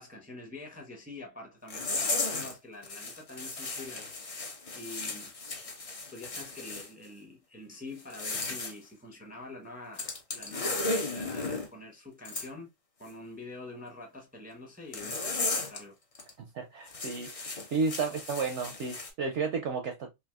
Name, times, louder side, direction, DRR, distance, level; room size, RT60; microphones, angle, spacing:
voice 1, 0.0-4.2 4.7-5.3 6.1-12.7 13.0-15.9, left 2 dB, 10° right, 0.5 m, -46 dB
sound 1, 1.7-2.5 2.8-6.9 8.0-8.7 10.0-11.7 12.3-12.5 14.9-15.8 16.1-16.3 16.9-19.1, left 3 dB, 50° left, 0.4 m, -35 dB
voice 2, 16.4-20.1, right 4 dB, 65° right, 0.7 m, -32 dB
3.4 x 2.5 x 2.2 m
omnidirectional pair, 1.5 m